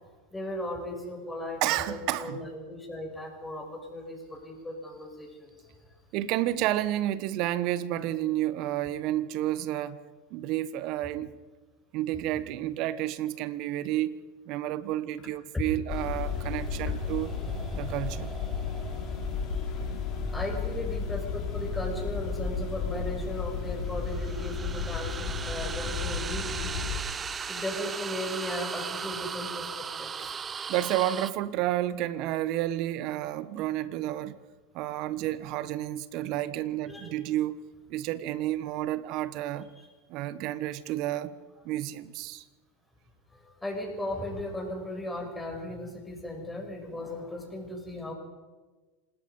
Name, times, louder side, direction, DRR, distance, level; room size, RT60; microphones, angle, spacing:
voice 1, 0.3-5.8 15.5-15.6 16.4-16.5 16.8-16.9 19.4-19.7 20.3-26.7 27.5-30.4 36.9-37.1 39.7-39.9 43.3-48.1, left 1 dB, 10° left, 7.6 m, -37 dB
voice 2, 1.6-2.4 6.1-10.0 10.3-11.3 11.9-14.2 14.5-17.3 17.7-18.3 30.7-34.4 34.7-37.6 37.9-39.7 40.1-41.3 41.6-42.4, right 14 dB, 55° right, 1.3 m, -30 dB
sound 1, 15.9-27.0, left 5 dB, 45° left, 4.5 m, -33 dB
sound 2, 16.2-21.3 23.8-31.3, right 6 dB, 25° right, 0.7 m, -38 dB
27.0 x 20.0 x 5.5 m
hypercardioid pair, 90°, 0 cm